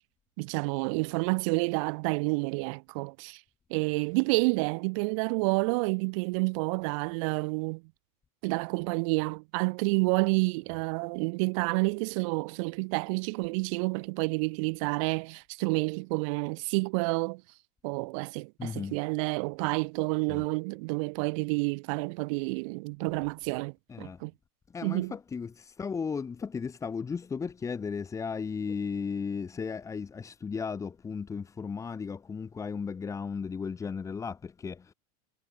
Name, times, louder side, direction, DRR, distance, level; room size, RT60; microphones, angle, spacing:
voice 1, 0.4-3.4 3.7-7.8 8.4-17.4 17.8-24.3 24.8-25.1, right 31 dB, 55° right, 0.8 m, -29 dB
voice 2, 18.6-19.0 20.3-20.4 23.1-23.2 23.9-24.2 24.7-34.9, left 5 dB, 15° left, 4.1 m, -35 dB
supercardioid pair, 145°, 20 cm